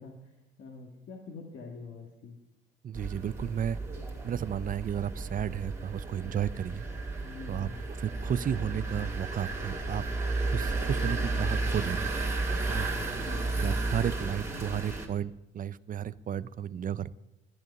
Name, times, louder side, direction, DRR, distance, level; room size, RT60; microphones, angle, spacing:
voice 1, 0.0-2.4 7.2-7.8 13.2-13.5, left 4 dB, 70° left, 0 dB, 2.0 m, -45 dB
voice 2, 2.8-3.8 4.2-6.9 7.5-10.0 10.5-12.1 12.7-12.9 13.6-17.1, right 9 dB, 45° right, 17 dB, 0.6 m, -33 dB
sound 1, 2.9-15.1, right 3 dB, 15° right, 3.0 m, -33 dB
12.0 x 10.5 x 5.4 m, 0.96 s
cardioid pair, 90°, 20 cm